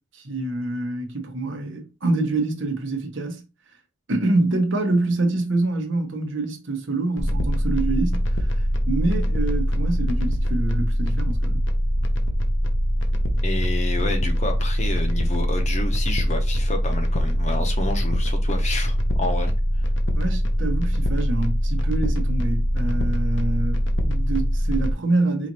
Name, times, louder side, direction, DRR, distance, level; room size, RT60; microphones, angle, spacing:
voice 1, 0.1-3.4 4.1-11.7 20.1-25.5, right 2 dB, 70° right, 1.0 m, -26 dB
sound 1, 7.2-24.9, equal, 65° left, 0.7 m, -22 dB
voice 2, 13.4-19.5, left 2 dB, 35° left, 0.9 m, -29 dB
5.0 x 2.6 x 2.9 m
head